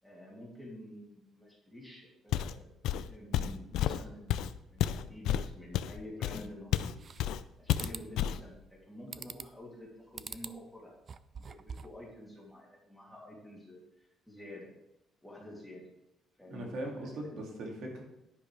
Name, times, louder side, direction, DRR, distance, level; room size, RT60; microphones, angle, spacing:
voice 1, 0.0-4.4 4.7-7.0 7.6-10.9 11.3-14.7 15.2-15.8 16.4-17.3, left 1 dB, ahead, -4 dB, 2.9 m, -49 dB
Walk footsteps, 2.3-2.6 2.8-6.9 7.2-7.4 7.7-8.4, left 11 dB, 80° left, 0.5 m, -31 dB
sound 1, 6.7-7.4 7.7-8.1 9.1-9.6 10.1-10.6 11.0-12.0, right 6 dB, 35° right, 0.4 m, -44 dB
voice 2, 16.5-18.0, right 1 dB, 60° right, 0 dB, 2.4 m, -40 dB
11.0 x 10.5 x 3.4 m, 0.88 s
cardioid pair, 155°, 0 cm